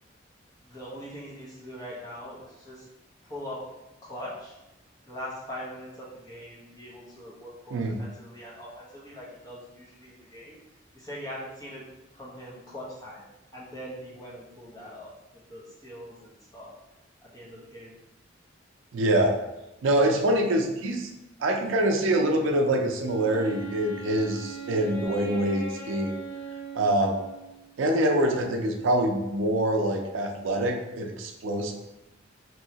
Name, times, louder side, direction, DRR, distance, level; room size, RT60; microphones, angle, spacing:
voice 1, 0.6-2.8 3.2-3.6 4.0-4.6 5.1-10.6 10.9-11.8 12.1-13.2 13.5-15.1 15.5-16.7 17.2-17.9, equal, 20° left, -6 dB, 0.8 m, -41 dB
voice 2, 18.9-19.4 19.8-21.1 21.4-26.1 26.7-27.2 27.8-31.7, right 1 dB, 80° right, 3 dB, 0.4 m, -25 dB
Wind instrument woodwind instrument, 23.0-27.8, right 3 dB, 70° left, 1.1 m, -40 dB
3.0 x 2.8 x 2.8 m, 0.95 s
head